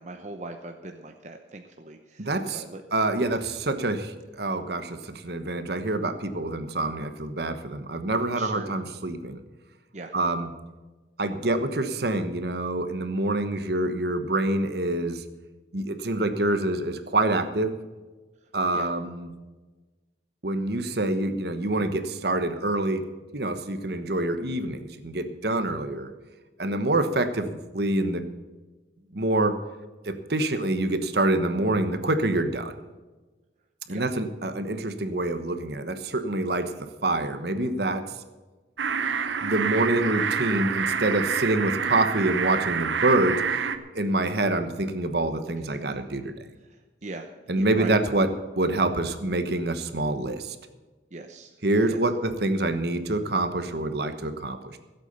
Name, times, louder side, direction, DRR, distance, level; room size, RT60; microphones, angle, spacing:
voice 1, 0.0-2.8 8.4-8.7 9.9-10.1 18.7-18.9 33.9-34.1 46.7-47.3 47.5-48.0 51.1-51.6 51.9-52.0, right 2 dB, 40° right, 4 dB, 0.8 m, -40 dB
voice 2, 2.2-2.6 2.9-9.4 10.1-10.5 11.2-15.2 15.7-17.8 18.5-19.3 20.4-23.1 23.3-26.1 26.6-28.2 29.1-29.6 30.0-32.7 33.9-38.1 39.4-46.5 47.5-48.3 48.6-50.6 51.6-54.8, right 2 dB, 60° right, 9 dB, 1.2 m, -26 dB
sound 1, 38.8-43.8, right 6 dB, 85° right, 0.9 m, -27 dB
16.0 x 8.3 x 6.9 m, 1.2 s
head